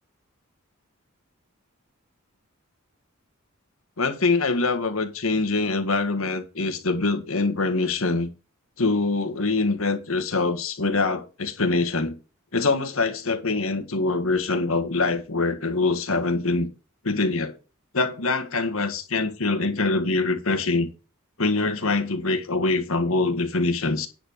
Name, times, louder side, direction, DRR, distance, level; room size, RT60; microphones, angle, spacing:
voice 1, 4.0-8.3 8.8-12.2 12.5-16.7 17.0-17.6 17.9-20.9 21.4-24.1, left 3 dB, 80° left, 1.7 m, -24 dB
10.0 x 4.4 x 6.6 m
head